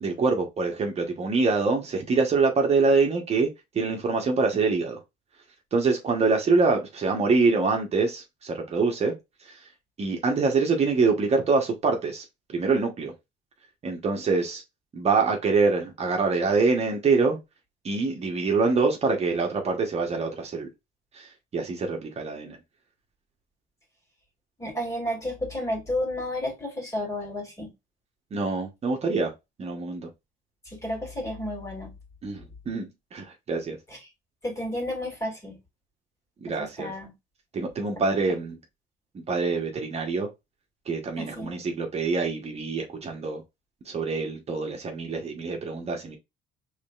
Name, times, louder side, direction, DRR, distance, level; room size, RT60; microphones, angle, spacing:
voice 1, 0.0-5.0 5.7-9.1 9.4-9.7 10.0-13.1 13.8-14.6 14.9-17.4 17.8-20.7 21.1-22.6 28.3-29.3 29.6-30.1 32.2-33.8 36.4-36.9 37.5-38.6 39.3-40.3 40.9-43.4 43.8-46.2, right 4 dB, 40° right, 1.1 m, -25 dB
voice 2, 24.6-27.7 30.7-31.9 34.4-35.6 36.8-37.1 41.2-41.5, left 1 dB, 20° left, 2.5 m, -31 dB
5.0 x 3.3 x 2.4 m
cardioid pair, 110°, 17 cm